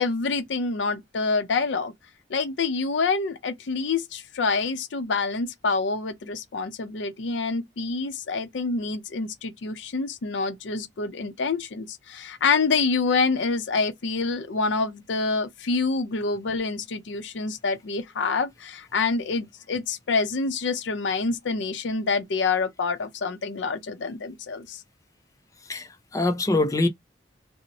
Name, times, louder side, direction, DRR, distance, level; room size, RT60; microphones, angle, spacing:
voice 1, 0.0-1.9 2.3-24.8, left 4 dB, 90° left, 0.5 m, -27 dB
voice 2, 25.6-26.9, left 2 dB, 20° left, 0.4 m, -24 dB
2.6 x 2.0 x 3.9 m
head